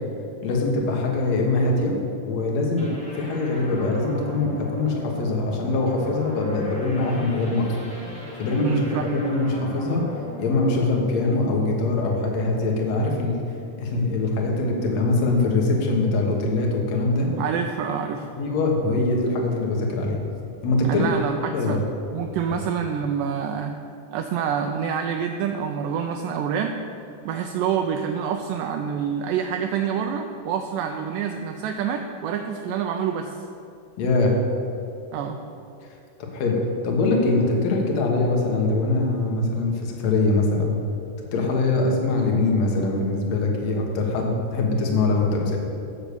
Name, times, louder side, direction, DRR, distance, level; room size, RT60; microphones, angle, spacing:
voice 1, 0.4-2.0 2.2-2.9 3.1-7.8 8.4-10.0 10.4-13.4 13.8-17.3 18.4-20.2 20.6-21.1 21.5-21.8 34.0-34.4 36.3-40.7 41.3-45.6, left 2 dB, 60° left, 0 dB, 2.2 m, -23 dB
sound 1, 2.8-12.1, right 1 dB, 5° left, 0.9 m, -38 dB
voice 2, 8.6-9.1 17.4-18.3 20.9-21.8 22.1-23.7 24.1-26.7 27.3-33.4 35.1-35.4, right 7 dB, 80° right, 4 dB, 2.0 m, -27 dB
8.0 x 7.3 x 6.8 m, 2.6 s
omnidirectional pair, 4.1 m